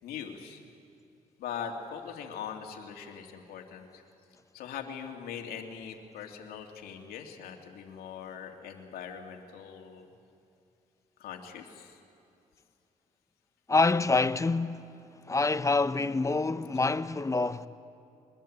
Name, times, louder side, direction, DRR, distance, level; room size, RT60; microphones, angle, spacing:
voice 1, 0.0-0.6 1.4-4.0 4.5-10.1 11.2-12.0, left 7 dB, 85° left, 2.7 m, -41 dB
voice 2, 13.7-15.0 15.3-17.7, left 3 dB, 20° left, 0.9 m, -26 dB
24.0 x 20.5 x 8.9 m
cardioid pair, 75°, 15 cm